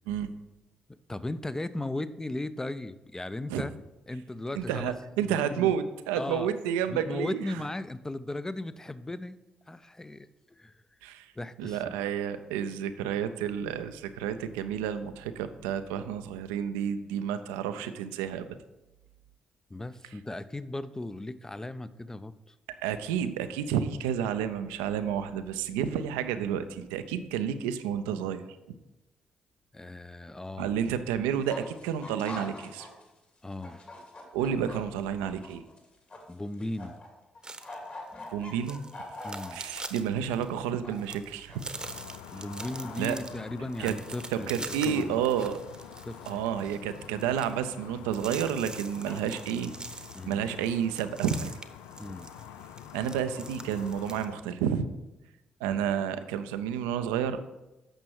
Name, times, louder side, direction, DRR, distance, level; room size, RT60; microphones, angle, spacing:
voice 1, 1.1-3.8 4.1-4.9 5.2-5.7 6.2-6.5 6.9-9.4 9.7-10.8 11.4-11.9 19.7-22.5 29.7-30.8 33.4-34.0 36.3-37.0 38.1-38.3 39.2-39.6 42.3-45.2 46.1-46.4 50.1-50.5 52.0-52.3 55.6-55.9, left 2 dB, 15° left, 14 dB, 0.5 m, -37 dB
voice 2, 4.5-7.4 11.0-11.3 11.6-18.5 22.8-28.5 30.6-32.9 34.3-35.6 38.3-38.8 39.5-41.7 43.0-43.2 43.8-43.9 44.3-45.6 46.3-49.7 50.3-51.5 52.9-54.9 55.6-57.4, right 8 dB, 80° right, 10 dB, 0.5 m, -30 dB
sound 1, 31.3-33.1 33.4-37.1 37.3-39.8 40.5-41.2 41.5-42.3 42.6-43.1 44.9-45.3 45.6-46.5 47.0-47.1 48.1-48.2 48.7-48.8 49.1-49.5, left 2 dB, 45° left, 2.7 m, -44 dB
sound 2, 37.4-54.2, right 2 dB, 20° right, 0.9 m, -44 dB
sound 3, 41.8-54.4, left 10 dB, 75° left, 0.3 m, -47 dB
8.9 x 6.1 x 4.7 m, 0.99 s
hypercardioid pair, 40°, 3 cm